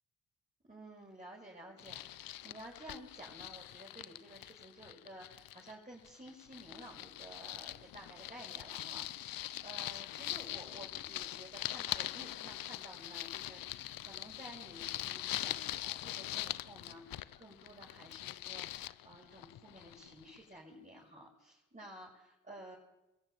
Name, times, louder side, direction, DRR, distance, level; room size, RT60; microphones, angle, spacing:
voice 1, 0.6-22.8, right 1 dB, 20° right, -3 dB, 7.0 m, -53 dB
sound 1, 1.8-5.7 6.0-20.4, left 14 dB, 80° left, 0.8 m, -43 dB
23.5 x 14.5 x 9.5 m, 0.93 s
cardioid pair, 65°, 34 cm